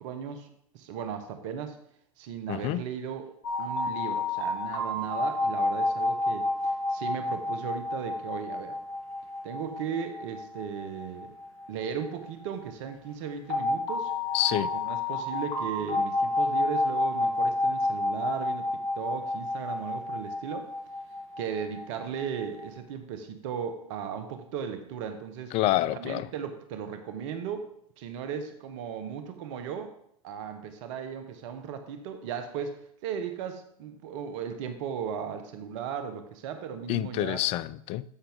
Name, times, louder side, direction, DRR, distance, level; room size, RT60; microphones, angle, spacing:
voice 1, 0.0-1.8 2.2-3.3 3.6-8.8 9.4-11.3 11.7-14.1 14.6-20.7 21.4-25.5 25.9-27.7 28.0-29.9 30.2-37.4, right 7 dB, 50° right, 1.1 m, -36 dB
voice 2, 2.5-2.8 14.3-14.7 25.5-26.3 36.9-38.0, left 15 dB, 30° left, 0.4 m, -27 dB
sound 1, 3.4-12.3 13.5-22.7, left 2 dB, 50° left, 3.2 m, -30 dB
14.0 x 5.7 x 3.6 m
hypercardioid pair, 100°, 19 cm